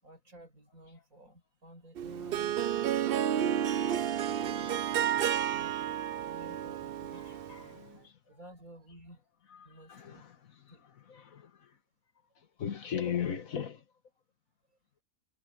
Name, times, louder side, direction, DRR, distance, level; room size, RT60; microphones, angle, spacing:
voice 1, 0.0-2.6 3.3-5.1 5.4-7.4 7.9-9.2 9.6-10.2 10.7-10.9, right 1 dB, 75° right, 8.4 m, -54 dB
Harp, 2.0-7.7, right 10 dB, 55° right, 0.7 m, -31 dB
voice 2, 7.5-8.1 9.9-10.3 11.1-11.5 12.6-13.8, left 8 dB, 75° left, 1.9 m, -36 dB
omnidirectional pair, 1.5 m